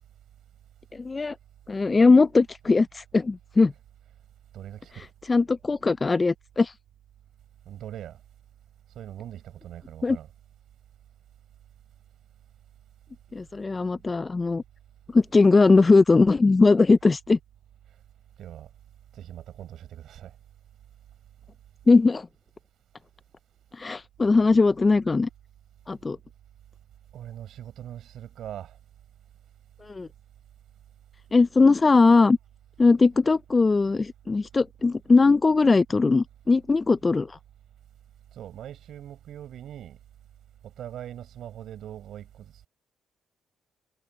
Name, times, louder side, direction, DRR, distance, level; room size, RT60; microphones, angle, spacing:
voice 1, 0.9-1.4 1.7-3.7 4.9-6.7 10.0-10.2 13.3-14.6 15.1-17.4 21.9-22.3 23.7-25.3 25.9-26.2 29.8-30.1 31.3-32.4 32.8-37.4, left 3 dB, 25° left, 0.3 m, -20 dB
voice 2, 4.5-5.1 7.7-8.2 8.9-10.3 18.4-18.7 19.1-20.3 27.1-28.8 38.3-40.0 40.6-42.7, right 11 dB, 75° right, 6.4 m, -41 dB
cardioid pair, 90°, 0 cm